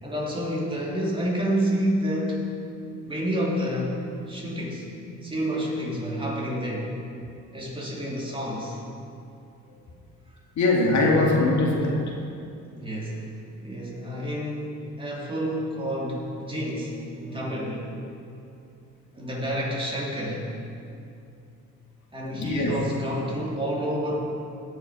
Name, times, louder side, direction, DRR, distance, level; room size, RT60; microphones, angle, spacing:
voice 1, 0.0-2.6 3.1-4.9 5.2-7.0 7.5-8.8 12.7-13.3 13.6-17.9 19.1-20.5 22.1-24.2, equal, 15° right, -4 dB, 2.9 m, -29 dB
voice 2, 10.6-12.1 22.3-22.8, left 2 dB, 65° left, -1 dB, 2.0 m, -22 dB
17.0 x 6.3 x 4.8 m, 2.6 s
cardioid pair, 90°, 30 cm